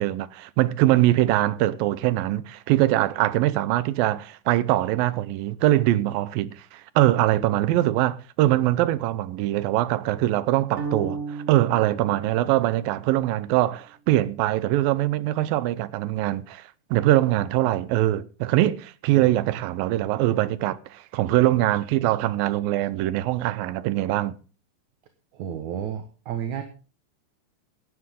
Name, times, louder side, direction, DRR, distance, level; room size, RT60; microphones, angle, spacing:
voice 1, 0.0-16.6 16.9-24.3, right 15 dB, 85° right, 2.6 m, -22 dB
sound 1, 10.8-13.1, right 4 dB, 30° right, 1.3 m, -34 dB
voice 2, 25.3-26.6, right 9 dB, 65° right, 2.5 m, -31 dB
17.0 x 12.5 x 3.6 m
omnidirectional pair, 4.0 m